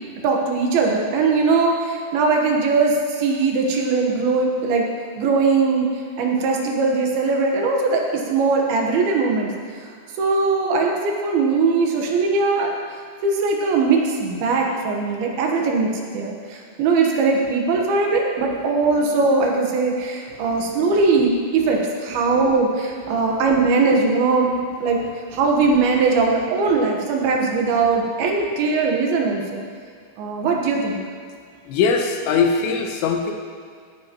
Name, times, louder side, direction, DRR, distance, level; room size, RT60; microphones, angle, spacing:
voice 1, 0.2-4.9 5.2-5.9 6.2-9.5 10.2-13.0 13.2-24.5 24.8-25.0 25.3-29.6 30.2-31.0, right 4 dB, 70° right, 0 dB, 2.8 m, -20 dB
voice 2, 31.7-33.3, left 5 dB, 85° left, 3 dB, 3.2 m, -20 dB
17.5 x 9.5 x 2.9 m, 2.2 s
omnidirectional pair, 5.0 m